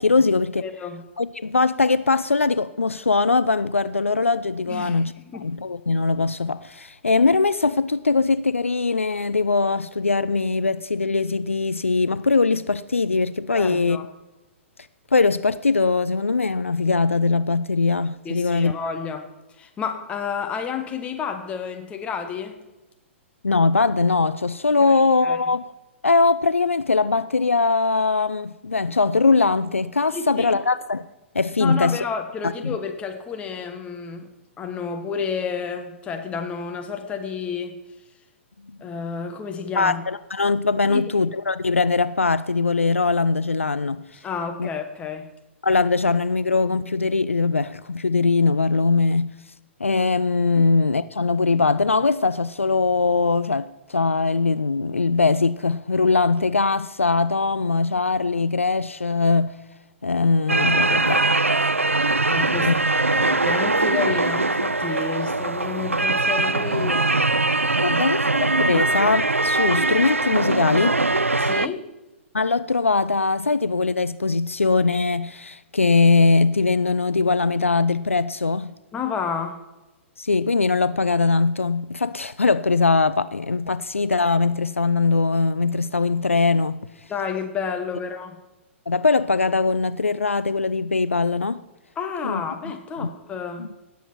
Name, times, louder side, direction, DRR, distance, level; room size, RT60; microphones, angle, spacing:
voice 1, 0.0-0.6 1.2-5.1 5.4-14.0 15.1-18.7 23.4-25.7 26.0-31.1 31.3-32.0 32.4-32.8 39.8-44.0 44.6-44.7 45.6-49.3 49.8-59.6 60.0-61.3 62.6-62.7 67.8-71.0 72.3-78.7 80.2-86.9 88.9-91.6 92.2-92.4 93.0-93.1 93.6-93.7, left 4 dB, 80° left, 0.4 m, -21 dB
voice 2, 0.6-1.0 4.7-5.0 5.3-5.5 13.5-14.1 18.2-19.3 19.6-22.6 24.9-25.0 25.2-25.4 30.1-30.5 31.6-34.3 34.6-37.8 38.8-40.0 40.8-41.0 44.2-45.3 50.6-50.7 62.3-67.1 67.9-68.0 71.4-71.8 78.9-79.6 87.1-88.4 92.0-93.7, left 6 dB, 15° left, 1.2 m, -30 dB
sound 1, 60.5-71.7, right 2 dB, 85° right, 0.3 m, -21 dB
17.5 x 7.3 x 4.4 m
figure-of-eight pair, 110°, 7 cm